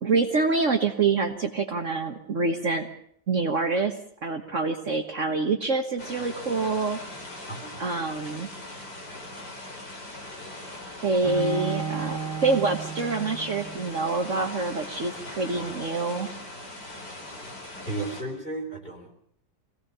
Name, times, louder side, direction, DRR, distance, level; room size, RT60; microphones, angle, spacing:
voice 1, 0.0-2.9 3.3-3.9 4.2-7.0 7.8-8.5 11.0-16.3, right 3 dB, 50° right, 4 dB, 1.5 m, -26 dB
sound 1, 6.0-18.2, left 1 dB, 75° left, 5.0 m, -40 dB
Bowed string instrument, 11.2-14.2, right 6 dB, 15° right, 0.7 m, -34 dB
voice 2, 16.9-17.5 17.9-19.1, right 2 dB, 30° left, 1 dB, 3.7 m, -35 dB
24.5 x 17.0 x 6.9 m, 0.66 s
omnidirectional pair, 1.8 m